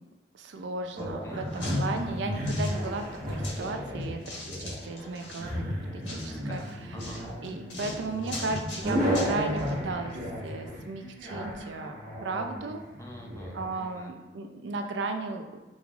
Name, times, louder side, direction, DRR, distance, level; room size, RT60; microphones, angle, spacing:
voice 1, 0.3-5.6 5.9-6.6 7.4-10.2 10.4-12.8 13.5-15.6, right 3 dB, 70° right, 5 dB, 0.4 m, -35 dB
sound 1, 1.0-1.1 1.5-3.7 4.0-5.5 6.0-9.7 10.1-10.2, left 2 dB, 70° left, 1.4 m, -42 dB
sound 2, 1.0-13.6, equal, 50° right, 1.1 m, -33 dB
voice 2, 1.2-1.8 6.2-7.2 12.9-14.2, equal, 15° left, 0 dB, 0.6 m, -46 dB
5.2 x 3.1 x 2.4 m, 1.1 s
head